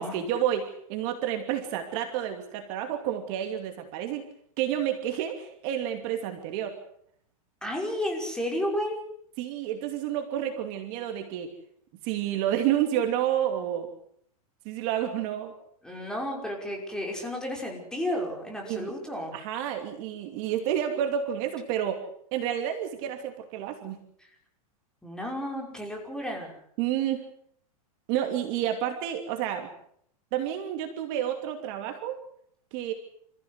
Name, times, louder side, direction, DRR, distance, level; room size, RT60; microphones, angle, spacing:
voice 1, 0.0-4.2 4.6-6.8 9.4-11.5 12.0-13.9 14.6-15.5 18.7-18.9 19.3-22.0 22.3-24.0 26.8-27.2 28.1-29.7 30.3-32.2 32.7-32.9, right 10 dB, 45° right, 5 dB, 2.8 m, -30 dB
voice 2, 7.6-9.0 15.8-19.4 25.0-26.6, left 1 dB, 5° left, 1 dB, 5.6 m, -32 dB
29.0 x 15.0 x 8.1 m, 0.67 s
supercardioid pair, 145°, 19 cm